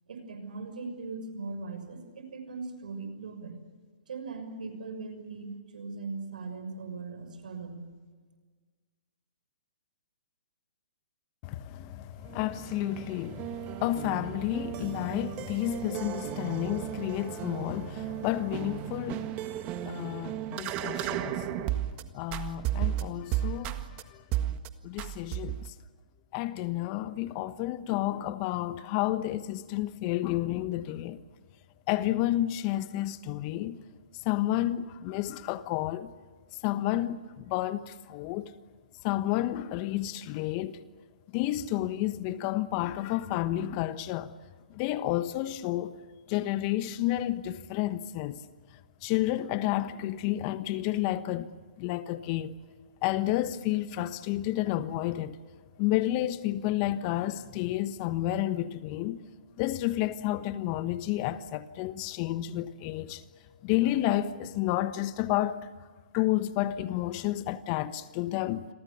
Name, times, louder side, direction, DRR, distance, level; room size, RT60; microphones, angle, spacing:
voice 1, 0.1-3.6 4.1-7.8, right 3 dB, 70° right, 6.2 m, -39 dB
voice 2, 11.4-24.2 24.8-25.7 26.3-31.2 31.9-33.8 34.1-36.1 36.6-38.5 39.0-40.8 41.3-44.3 44.7-46.0 46.3-48.4 49.0-51.5 51.8-52.6 53.0-55.4 55.8-59.2 59.6-63.2 63.6-65.7 66.1-68.7, left 14 dB, 35° left, 1.2 m, -31 dB
sound 1, 12.3-22.0 22.3-24.0 24.3-24.7 25.0-25.7, right 13 dB, 30° right, 1.7 m, -34 dB
29.0 x 23.0 x 7.1 m
hypercardioid pair, 135°, 5 cm